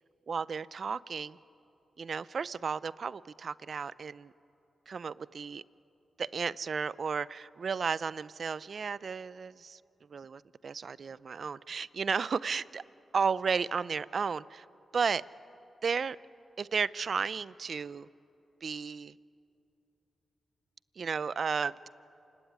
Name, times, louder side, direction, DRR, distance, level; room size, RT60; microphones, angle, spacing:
voice 1, 0.3-1.4 2.0-4.3 4.9-5.6 6.2-9.8 10.1-12.8 13.1-14.7 14.9-15.2 15.8-16.2 16.6-18.1 18.6-19.1 21.0-21.9, right 5 dB, 65° right, 19 dB, 0.5 m, -33 dB
28.0 x 18.0 x 9.5 m, 2.9 s
supercardioid pair, 45°, 0 cm